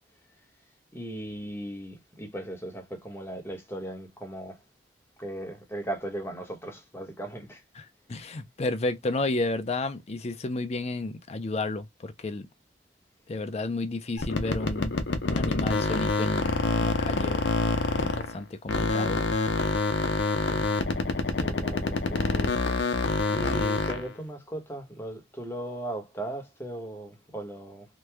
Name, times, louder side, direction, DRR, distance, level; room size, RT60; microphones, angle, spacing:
voice 1, 0.9-4.6 5.2-7.6 21.4-22.5 23.3-27.9, right 1 dB, 15° left, 1.0 m, -37 dB
voice 2, 7.8-12.5 13.3-15.0 15.3-17.4 18.0-19.3, left 2 dB, 35° left, 0.5 m, -32 dB
sound 1, 14.2-18.4 18.7-24.1, left 3 dB, 75° left, 0.7 m, -26 dB
3.0 x 2.2 x 3.4 m
head